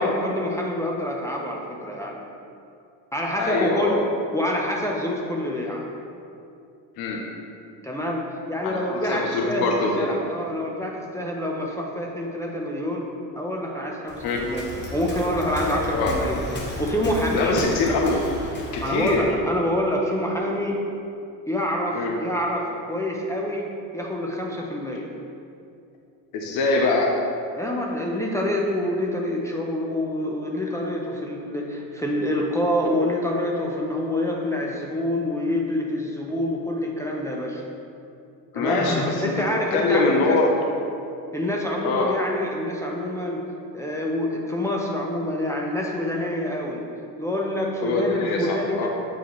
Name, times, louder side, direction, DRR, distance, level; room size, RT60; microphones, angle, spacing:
voice 1, 0.0-2.2 3.1-4.1 4.3-5.8 7.8-13.1 13.3-16.4 16.8-17.7 18.8-20.8 21.5-23.7 23.9-25.1 27.5-37.6 38.5-40.4 41.3-43.5 43.7-46.8 47.2-48.9, left 1 dB, 5° left, -2 dB, 0.6 m, -26 dB
voice 2, 3.4-4.0 7.0-7.2 8.6-10.2 14.2-14.5 15.9-16.1 17.3-18.2 18.7-19.3 21.9-22.2 26.3-27.1 38.5-39.3 39.7-40.6 41.8-42.1 47.8-48.9, left 3 dB, 60° left, 0 dB, 0.8 m, -23 dB
Waves surf, 14.1-19.3, left 1 dB, 25° left, 1.0 m, -33 dB
7.0 x 4.6 x 3.0 m, 2.6 s
supercardioid pair, 95°, 41 cm